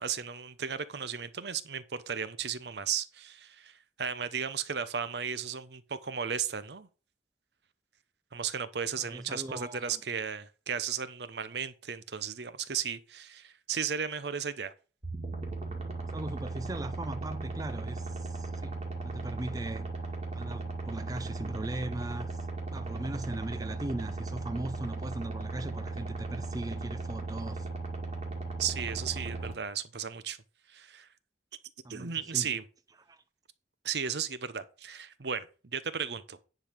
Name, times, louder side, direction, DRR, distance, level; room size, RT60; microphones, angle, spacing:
voice 1, 0.0-6.9 8.3-14.7 28.6-30.4 30.7-31.1 31.9-32.6 33.8-36.4, right 7 dB, 70° right, 0.8 m, -35 dB
voice 2, 9.0-10.0 16.1-19.9 20.3-22.4 22.7-27.7 31.8-32.5 33.1-33.2, right 1 dB, 20° right, 0.5 m, -39 dB
sound 1, 15.0-29.5, right 3 dB, 35° right, 2.1 m, -37 dB
10.5 x 4.0 x 6.6 m
head